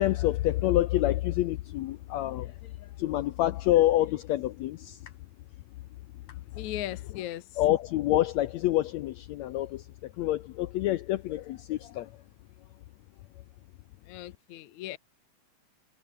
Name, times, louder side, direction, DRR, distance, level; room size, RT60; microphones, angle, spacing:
voice 1, 0.0-2.5 3.0-5.0 7.6-12.1, left 14 dB, 80° left, 1.6 m, -27 dB
voice 2, 6.6-7.6 14.1-15.0, left 13 dB, 65° left, 2.2 m, -38 dB
omnidirectional pair, 3.9 m